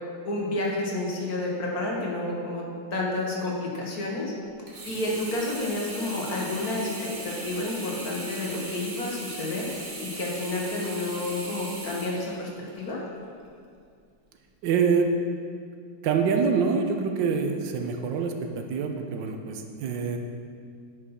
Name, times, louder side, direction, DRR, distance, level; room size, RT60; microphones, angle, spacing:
voice 1, 0.2-2.6 2.9-4.3 4.9-6.9 7.2-9.7 10.0-12.5 12.8-13.0, left 2 dB, 55° left, -2 dB, 1.9 m, -30 dB
Sink (filling or washing), 4.7-12.9 13.4-13.5, right 2 dB, 35° right, 1.3 m, -38 dB
voice 2, 14.6-15.1 16.0-20.2, right 5 dB, 85° right, 4 dB, 1.5 m, -25 dB
9.9 x 5.5 x 5.6 m, 2.2 s
omnidirectional pair, 1.9 m